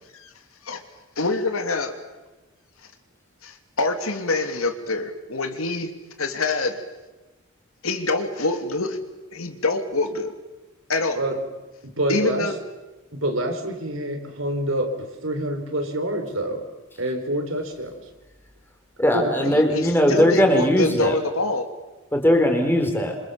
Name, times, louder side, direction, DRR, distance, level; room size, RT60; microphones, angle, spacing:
voice 1, 1.2-1.9 3.4-5.9 6.2-6.8 7.8-9.0 9.3-10.3 10.9-11.2 12.1-12.5 19.5-21.7, left 2 dB, 85° left, 7 dB, 2.9 m, -25 dB
voice 2, 11.8-12.5 13.1-16.6 17.0-17.9 19.1-19.3, right 1 dB, 70° right, 5 dB, 4.5 m, -26 dB
voice 3, 19.0-21.2 22.1-23.2, left 1 dB, 10° left, 4 dB, 4.3 m, -19 dB
27.0 x 27.0 x 7.2 m, 1.1 s
head